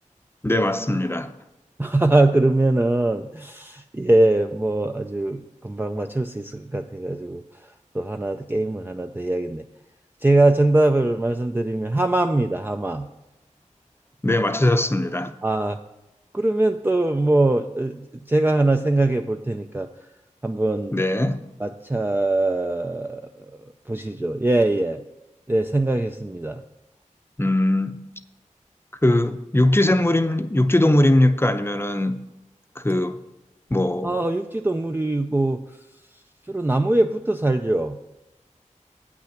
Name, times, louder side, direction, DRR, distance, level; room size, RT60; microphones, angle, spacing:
voice 1, 0.4-1.3 14.2-15.3 20.9-21.4 27.4-28.0 29.0-32.3 32.8-33.2 33.7-34.1, left 1 dB, 20° left, 0.7 m, -20 dB
voice 2, 1.8-7.4 7.9-9.6 10.2-13.1 15.4-15.8 16.3-19.9 20.4-21.0 21.6-23.5 23.9-25.0 25.5-26.6 34.0-35.6 36.5-38.0, right 2 dB, 15° right, 0.4 m, -22 dB
8.4 x 6.1 x 5.8 m
wide cardioid pair, 45°, 13 cm